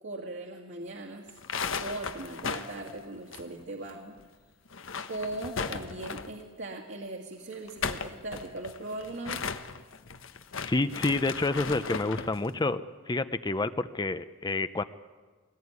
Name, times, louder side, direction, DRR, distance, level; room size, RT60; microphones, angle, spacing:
voice 1, 0.0-1.3 1.8-4.2 5.1-9.5, right 2 dB, 60° right, 1 dB, 2.2 m, -39 dB
sound 1, 1.3-3.9 4.2-4.3 4.7-6.4 7.5-12.4, left 5 dB, 70° left, 1.2 m, -36 dB
voice 2, 10.6-14.8, left 2 dB, 20° left, 12 dB, 0.6 m, -29 dB
22.0 x 19.0 x 9.6 m, 1.4 s
head